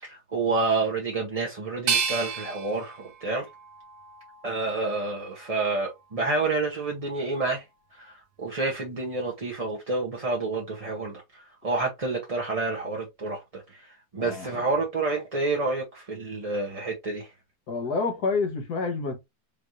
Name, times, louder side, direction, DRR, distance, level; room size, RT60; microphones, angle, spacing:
voice 1, 0.0-3.4 4.4-7.6 7.9-17.3, right 3 dB, 30° right, 0.8 m, -29 dB
sound 1, 1.9-4.8 5.3-6.2, right 6 dB, 75° right, 1.3 m, -32 dB
voice 2, 17.7-19.1, left 4 dB, 75° left, 1.7 m, -28 dB
5.1 x 2.6 x 3.0 m
omnidirectional pair, 1.7 m